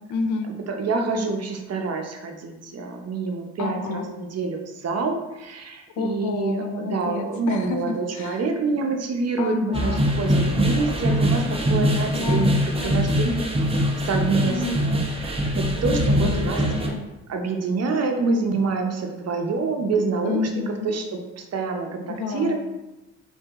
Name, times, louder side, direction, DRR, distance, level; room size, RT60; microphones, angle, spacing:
voice 1, 0.0-0.5 3.6-4.1 6.0-8.4 9.4-10.1 12.1-12.5 12.8-13.0 14.4-14.8 16.2-17.0 20.2-20.9 22.1-22.5, left 4 dB, 65° left, 7 dB, 0.6 m, -29 dB
voice 2, 0.7-11.4 11.7-13.5 14.1-16.6 17.3-22.5, right 4 dB, 50° right, 3 dB, 0.8 m, -27 dB
sound 1, 9.7-16.9, equal, 20° right, 0.9 m, -23 dB
4.5 x 2.8 x 3.6 m, 1.1 s
supercardioid pair, 60°, 32 cm